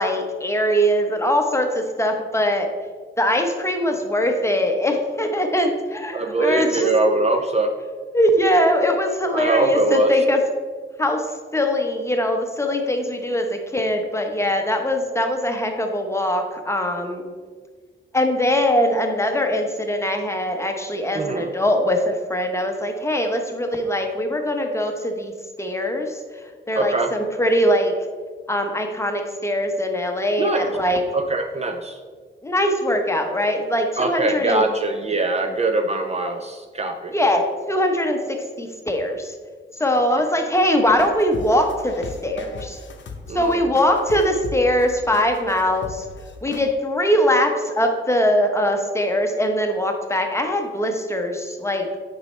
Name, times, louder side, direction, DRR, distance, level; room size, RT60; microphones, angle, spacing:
voice 1, 0.0-2.7 3.2-6.9 8.1-10.4 11.0-17.3 18.1-25.3 25.6-26.2 26.7-27.9 28.5-31.0 32.4-34.6 37.1-39.3 39.8-42.8 43.3-46.0 46.4-52.0, equal, 15° left, 4 dB, 0.8 m, -22 dB
voice 2, 6.1-7.7 9.3-10.1 21.1-21.5 26.7-27.1 30.4-30.8 31.1-32.0 34.0-37.1 43.3-43.7, right 2 dB, 35° right, 5 dB, 0.5 m, -22 dB
sound 1, 40.9-46.7, left 3 dB, 70° left, 0.8 m, -38 dB
8.1 x 5.5 x 3.1 m, 1.6 s
wide cardioid pair, 110°, 20 cm